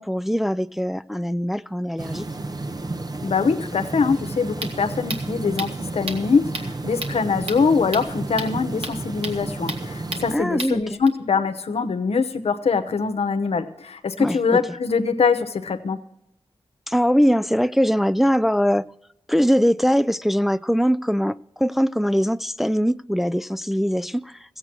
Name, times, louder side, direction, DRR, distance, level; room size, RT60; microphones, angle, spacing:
voice 1, 0.0-2.3 10.3-11.0 14.2-14.6 16.9-18.9 19.3-24.6, equal, ahead, 0.3 m, -22 dB
sound 1, 2.0-10.4, right 2 dB, 40° right, 0.8 m, -32 dB
voice 2, 3.2-16.0, left 5 dB, 85° left, 0.9 m, -23 dB
sound 2, 4.2-11.1, right 2 dB, 70° right, 1.6 m, -35 dB
15.0 x 8.0 x 6.0 m
cardioid pair, 55°, 10 cm